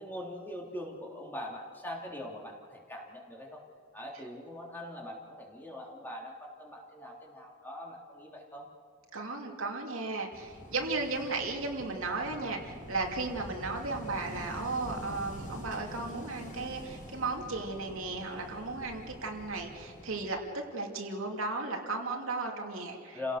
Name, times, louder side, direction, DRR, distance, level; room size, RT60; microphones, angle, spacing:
voice 1, 0.0-3.6 3.9-8.6 23.1-23.4, left 1 dB, 10° left, -2 dB, 3.4 m, -42 dB
voice 2, 9.1-20.4 20.7-23.4, right 3 dB, 65° right, 1 dB, 2.8 m, -35 dB
Wind / Waves surf, 10.3-20.3, equal, 35° left, 5.0 m, -46 dB
30.0 x 17.5 x 6.7 m, 2.2 s
head